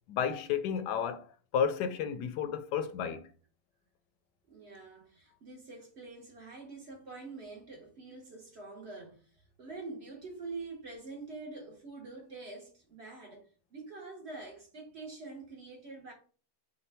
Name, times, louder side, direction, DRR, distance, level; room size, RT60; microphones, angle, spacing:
voice 1, 0.1-1.3 1.5-3.2, left 7 dB, 85° left, 1.2 m, -32 dB
voice 2, 4.5-13.4 13.7-16.1, right 3 dB, 50° right, 0.9 m, -45 dB
5.3 x 2.2 x 3.4 m
omnidirectional pair, 1.8 m